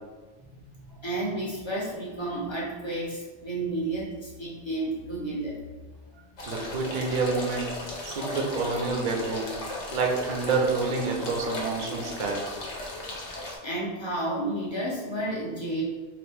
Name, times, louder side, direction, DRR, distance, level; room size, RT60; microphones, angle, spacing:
voice 1, 0.4-5.6 6.1-6.2 13.6-15.8, right 1 dB, 35° left, -6 dB, 0.5 m, -32 dB
sound 1, 6.4-13.6, left 2 dB, 75° left, 1.0 m, -36 dB
voice 2, 6.5-7.7 8.0-9.5 9.9-12.4, right 4 dB, 50° right, 0 dB, 0.5 m, -28 dB
2.8 x 2.5 x 3.3 m, 1.3 s
omnidirectional pair, 1.2 m